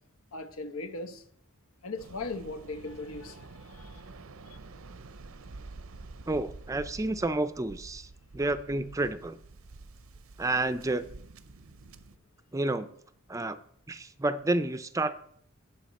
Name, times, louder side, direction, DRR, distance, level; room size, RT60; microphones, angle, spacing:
voice 1, 0.3-1.2 1.8-4.0, left 3 dB, 85° left, 0.9 m, -38 dB
Waves surf, 2.0-12.2, right 3 dB, 80° right, 0.7 m, -48 dB
voice 2, 6.3-9.4 10.4-11.0 12.5-12.9 13.3-13.6 13.9-15.1, right 2 dB, 15° right, 0.4 m, -30 dB
17.0 x 5.8 x 4.2 m
head